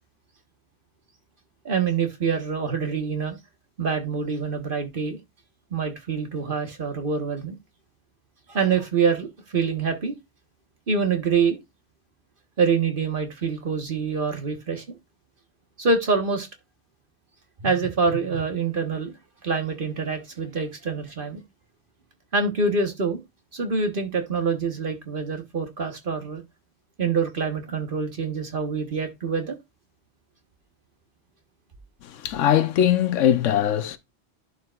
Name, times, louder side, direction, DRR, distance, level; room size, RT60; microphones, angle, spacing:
voice 1, 1.6-3.4 3.8-5.2 5.7-7.6 8.5-10.2 10.9-11.6 12.6-14.8 15.8-16.5 17.6-19.1 19.4-21.4 22.3-23.2 23.5-26.4 27.0-29.6, right 5 dB, 45° right, 1.4 m, -25 dB
voice 2, 32.1-34.0, left 10 dB, 80° left, 1.1 m, -21 dB
11.0 x 5.0 x 2.4 m
omnidirectional pair, 1.3 m